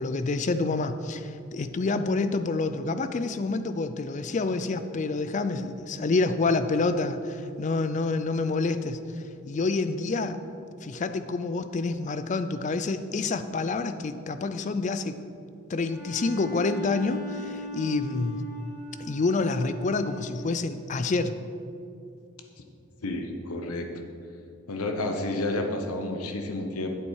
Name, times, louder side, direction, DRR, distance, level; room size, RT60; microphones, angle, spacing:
voice 1, 0.0-9.0 9.5-10.4 10.8-15.1 15.7-18.4 19.0-21.3, left 3 dB, 35° left, 11 dB, 0.3 m, -28 dB
Bowed string instrument, 15.9-20.6, equal, 5° right, 1.2 m, -40 dB
voice 2, 23.0-23.9 24.7-26.9, left 2 dB, 85° left, 4 dB, 0.9 m, -30 dB
8.5 x 7.2 x 4.7 m, 2.6 s
head